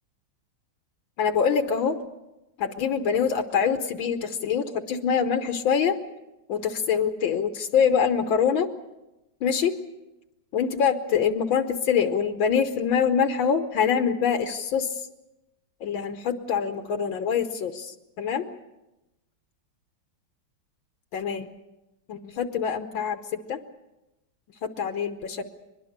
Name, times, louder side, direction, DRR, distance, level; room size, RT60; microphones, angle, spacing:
voice 1, 1.2-2.0 2.6-6.0 6.5-8.7 9.4-9.8 10.5-15.1 15.8-18.5 21.1-21.5 22.1-23.6 24.6-25.4, left 7 dB, 75° left, 8 dB, 1.7 m, -25 dB
23.5 x 21.0 x 6.6 m, 0.97 s
omnidirectional pair, 2.2 m